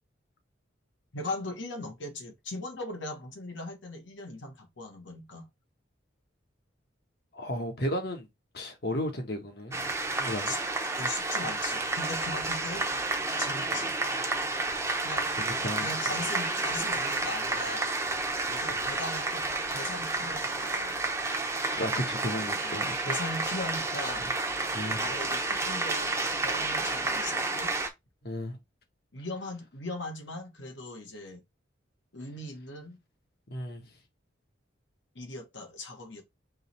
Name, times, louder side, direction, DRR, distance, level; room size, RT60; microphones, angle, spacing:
voice 1, 1.1-5.5 10.4-10.6 11.0-12.9 13.4-14.0 15.0-15.3 15.8-17.9 18.5-20.9 22.6-24.3 25.0-27.7 29.1-31.4 32.1-33.0 35.1-36.2, left 2 dB, 70° left, 1.4 m, -39 dB
voice 2, 7.3-8.3 8.5-9.8 10.2-10.5 15.4-15.9 21.7-23.1 24.7-25.0 28.2-28.6 33.5-33.8, left 1 dB, 55° left, 1.3 m, -34 dB
sound 1, 9.7-27.9, right 2 dB, 15° right, 0.7 m, -30 dB
3.8 x 3.1 x 4.2 m
head